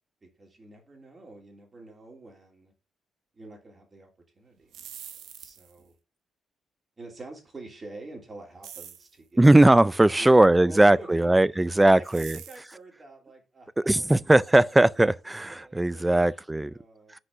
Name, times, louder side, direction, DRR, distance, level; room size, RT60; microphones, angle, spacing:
voice 1, 0.2-2.7 3.3-4.1 4.3-4.9 5.4-5.9 7.0-9.5 10.1-14.8 15.5-17.2, right 2 dB, 30° right, 3.1 m, -47 dB
sound 1, 4.6-5.8 8.6-9.1 12.0-12.7, right 9 dB, 80° right, 1.1 m, -44 dB
voice 2, 9.4-12.4 13.9-16.7, right 1 dB, 10° right, 0.4 m, -19 dB
6.2 x 5.1 x 5.6 m
cardioid pair, 90°, 0 cm